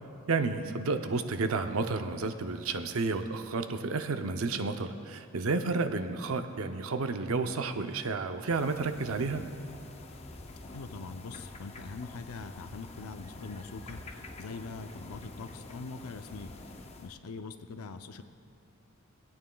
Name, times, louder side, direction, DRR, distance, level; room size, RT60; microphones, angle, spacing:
voice 1, 0.3-9.5, right 3 dB, 75° right, 8 dB, 0.6 m, -31 dB
sound 1, 8.5-17.1, left 2 dB, 30° left, 0.5 m, -47 dB
voice 2, 10.7-14.0 14.4-16.5 17.0-18.2, left 4 dB, 85° left, 9 dB, 0.5 m, -42 dB
20.0 x 8.9 x 2.3 m, 2.9 s
head